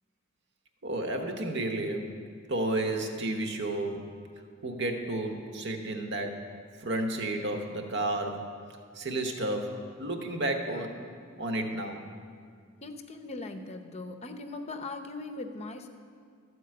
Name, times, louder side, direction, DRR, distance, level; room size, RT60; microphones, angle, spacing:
voice 1, 0.8-4.2 4.6-6.5 6.8-8.5 8.9-11.0 11.4-12.0, right 1 dB, 55° right, 4 dB, 1.0 m, -32 dB
voice 2, 12.8-15.9, left 2 dB, 30° left, 7 dB, 0.6 m, -39 dB
13.0 x 4.6 x 7.6 m, 2.2 s
head